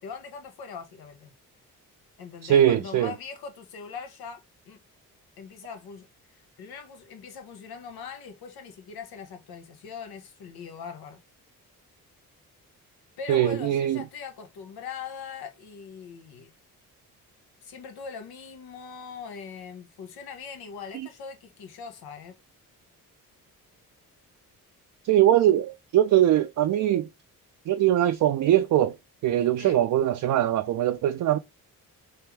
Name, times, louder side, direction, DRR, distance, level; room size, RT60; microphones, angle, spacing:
voice 1, 0.0-1.3 2.2-4.8 5.4-11.2 13.2-16.5 17.6-22.4 29.6-29.8, left 6 dB, 80° left, 1.1 m, -41 dB
voice 2, 2.4-3.1 13.3-14.0 25.0-27.1 27.7-29.0 29.2-31.4, right 12 dB, 60° right, 0.5 m, -22 dB
3.4 x 2.5 x 4.5 m
cardioid pair, 65°, 37 cm